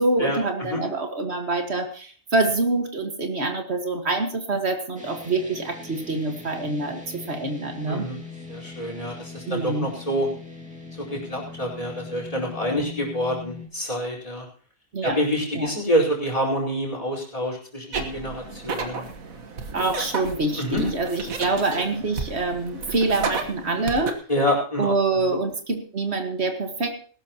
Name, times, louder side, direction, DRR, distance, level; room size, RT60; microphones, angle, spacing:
voice 1, 0.0-8.1 9.5-9.9 14.9-15.2 15.5-15.7 19.7-24.1 24.8-26.9, right 3 dB, 50° right, 5 dB, 1.9 m, -25 dB
sound 1, 5.0-13.7, left 4 dB, 5° right, 2.3 m, -41 dB
voice 2, 7.9-8.2 8.5-10.3 11.0-14.4 15.0-19.0 20.6-20.8 24.3-24.9 25.2-25.4, equal, 25° left, -1 dB, 4.6 m, -27 dB
sound 2, 17.9-24.1, right 4 dB, 90° right, 1.8 m, -33 dB
20.5 x 12.0 x 3.0 m, 0.43 s
omnidirectional pair, 1.4 m